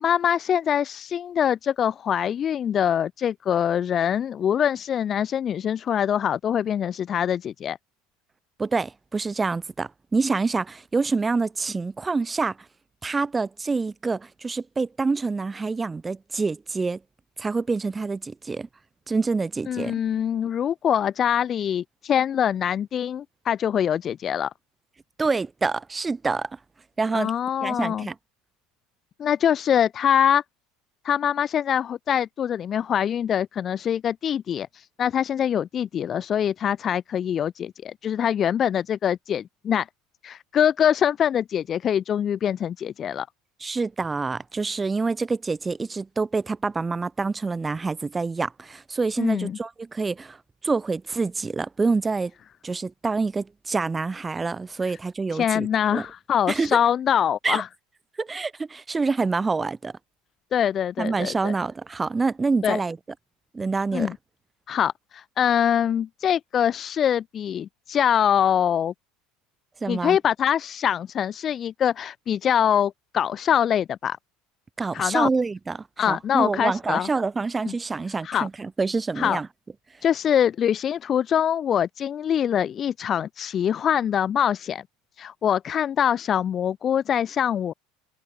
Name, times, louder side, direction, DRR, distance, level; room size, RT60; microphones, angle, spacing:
voice 1, 0.0-7.8 19.7-24.5 27.1-28.1 29.2-30.4 31.0-39.9 40.2-43.3 49.2-49.6 55.3-57.7 60.5-61.5 62.6-62.8 63.9-64.2 64.7-68.9 69.9-74.2 74.9-75.3 76.0-77.1 77.7-77.8 78.2-78.5 79.2-79.4 80.0-84.8 85.2-87.7, left 9 dB, 40° left, 1.8 m, -24 dB
voice 2, 8.6-12.6 13.0-17.0 17.4-18.7 19.1-20.0 25.2-26.5 27.0-27.3 27.6-28.2 43.6-50.4 50.6-52.3 52.6-55.7 55.9-56.0 56.5-56.8 57.4-57.6 58.2-59.9 61.0-63.0 63.5-64.1 69.8-70.2 74.8-79.5, right 4 dB, 20° right, 1.7 m, -26 dB
hypercardioid pair, 85°, 0 cm